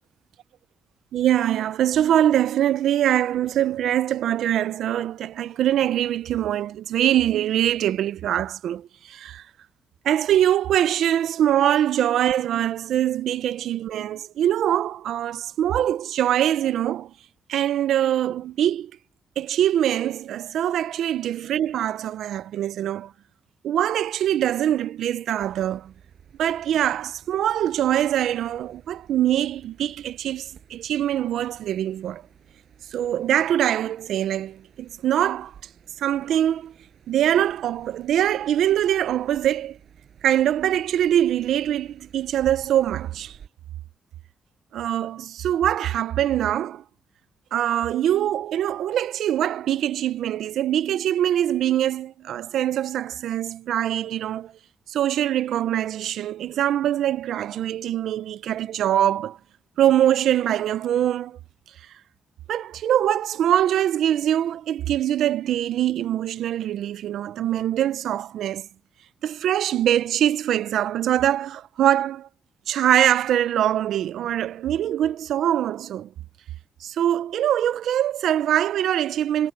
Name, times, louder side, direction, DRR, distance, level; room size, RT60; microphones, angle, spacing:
voice 1, 1.1-9.4 10.0-17.1 17.5-18.9 19.4-23.1 23.6-25.9 26.4-32.2 32.9-35.5 36.0-36.7 37.1-39.8 40.2-43.4 44.7-46.8 47.5-54.5 54.9-59.4 59.8-61.4 62.5-68.7 69.2-72.3 72.7-76.1 76.8-79.5, right 11 dB, 85° right, 0.5 m, -23 dB
sound 1, 25.4-43.5, right 8 dB, 60° right, 5.8 m, -53 dB
cardioid pair, 135°, 0 cm